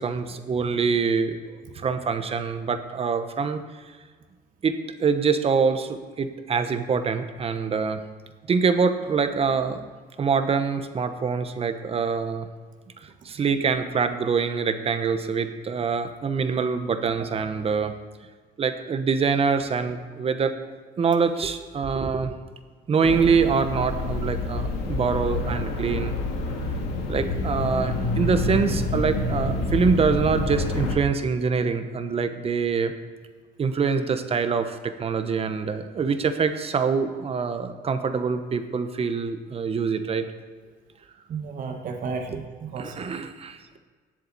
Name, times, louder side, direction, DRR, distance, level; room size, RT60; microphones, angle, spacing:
voice 1, 0.0-3.6 4.6-8.0 8.5-9.8 10.2-12.5 13.2-17.9 18.6-20.5 21.0-22.4 22.9-26.2 26.9-32.9 33.6-40.2 42.3-42.4 42.8-43.8, right 5 dB, 35° right, 9 dB, 1.0 m, -25 dB
sound 1, 23.0-31.0, left 2 dB, 90° left, 2.0 m, -27 dB
voice 2, 41.3-42.9, right 4 dB, 50° right, 3 dB, 1.4 m, -33 dB
18.0 x 7.7 x 4.2 m, 1.5 s
cardioid pair, 110°, 17 cm